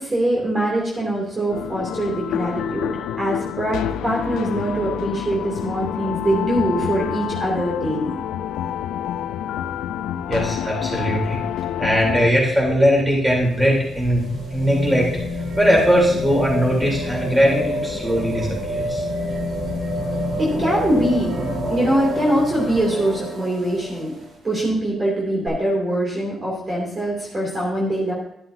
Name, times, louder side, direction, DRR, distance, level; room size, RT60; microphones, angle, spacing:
voice 1, 0.0-8.2 20.4-21.4 21.7-24.1 24.4-28.1, right 1 dB, 30° right, -4 dB, 2.9 m, -23 dB
sound 1, 1.5-12.3, left 10 dB, 85° left, 0.4 m, -28 dB
voice 2, 10.3-11.4 11.8-14.2 14.5-15.1 15.6-19.1, equal, 10° right, -2 dB, 3.8 m, -19 dB
sound 2, 13.4-24.3 25.5-25.6, left 1 dB, 60° right, 4.0 m, -28 dB
11.5 x 11.0 x 2.8 m, 0.78 s
cardioid pair, 90°, 0 cm